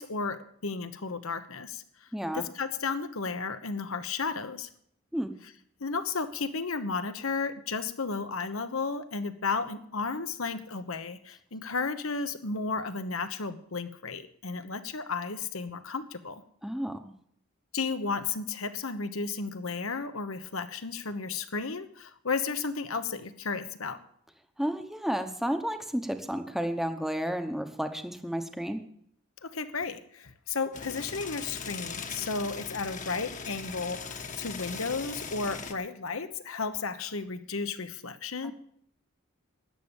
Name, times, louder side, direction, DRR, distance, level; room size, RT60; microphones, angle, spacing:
voice 1, 0.0-2.1 2.3-4.7 5.8-16.4 17.7-24.0 29.4-38.5, left 4 dB, 75° left, 11 dB, 1.2 m, -33 dB
voice 2, 2.1-2.4 5.1-5.3 16.6-17.1 24.6-28.8 38.4-38.5, equal, ahead, 7 dB, 1.0 m, -32 dB
sound 1, 30.7-35.7, left 5 dB, 35° left, 1.3 m, -39 dB
13.0 x 9.7 x 7.2 m, 0.66 s
head